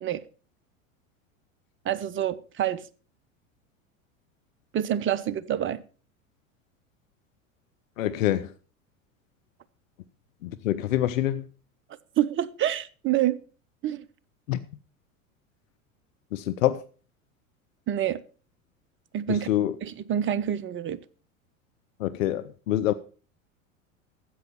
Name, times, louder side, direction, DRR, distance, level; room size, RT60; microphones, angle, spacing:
voice 1, 1.8-2.9 4.7-5.8 12.2-13.4 13.8-14.0 17.9-18.2 19.1-19.5 19.8-21.0, right 11 dB, 30° right, 0.9 m, -27 dB
voice 2, 8.0-8.5 10.4-11.5 14.5-14.6 16.3-16.8 19.3-19.8 22.0-22.9, left 13 dB, 70° left, 0.8 m, -26 dB
13.5 x 8.0 x 5.5 m
hypercardioid pair, 80°, 41 cm